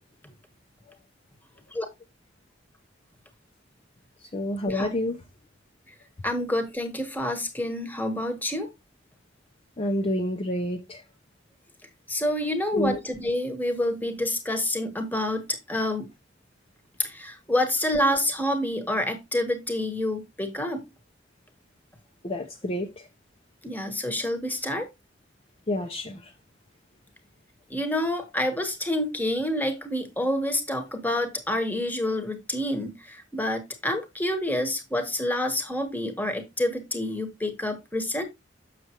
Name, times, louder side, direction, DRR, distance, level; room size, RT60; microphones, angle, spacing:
voice 1, 4.3-5.2 9.8-11.0 12.7-13.0 22.2-22.9 25.7-26.2, left 1 dB, 35° left, 0.8 m, -28 dB
voice 2, 6.2-8.7 12.1-16.1 17.0-20.8 23.6-24.9 27.7-38.2, left 1 dB, 10° left, 1.3 m, -28 dB
6.9 x 6.7 x 3.0 m
head